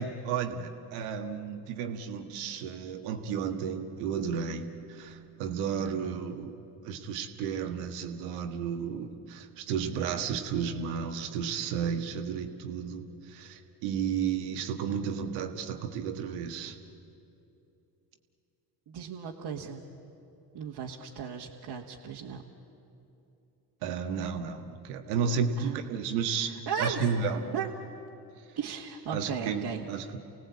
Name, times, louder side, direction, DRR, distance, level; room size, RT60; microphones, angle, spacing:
voice 1, 0.0-6.6 6.8-16.8 23.8-26.5 26.8-27.4 29.1-30.2, right 6 dB, 80° right, 5 dB, 1.8 m, -33 dB
voice 2, 18.9-19.8 20.5-22.4 25.6-25.8 26.4-27.1 27.5-27.7 28.6-29.8, right 7 dB, 50° right, -3 dB, 2.0 m, -36 dB
28.5 x 17.5 x 8.6 m, 2.8 s
hypercardioid pair, 70°, 49 cm